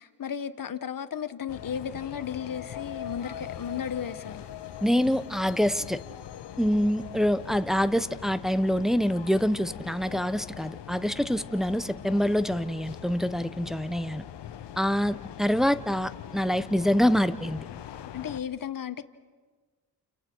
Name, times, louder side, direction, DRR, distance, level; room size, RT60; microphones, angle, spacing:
voice 1, 0.0-4.5 18.1-19.0, left 8 dB, 55° left, 12 dB, 1.3 m, -34 dB
sound 1, 1.5-18.4, left 10 dB, 85° left, 1.1 m, -42 dB
voice 2, 4.8-6.0 6.6-14.2 14.8-17.6, equal, ahead, 12 dB, 0.8 m, -26 dB
29.5 x 29.0 x 4.6 m, 1.4 s
cardioid pair, 60°, 41 cm